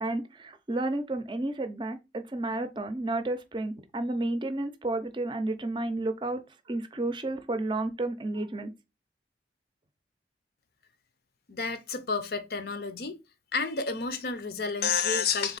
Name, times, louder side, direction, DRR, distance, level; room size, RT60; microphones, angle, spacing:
voice 1, 0.0-6.4 6.7-8.7, right 2 dB, 25° right, 0.5 m, -31 dB
voice 2, 11.5-13.2 13.5-15.6, left 5 dB, 60° left, 0.6 m, -30 dB
3.6 x 3.4 x 4.0 m
head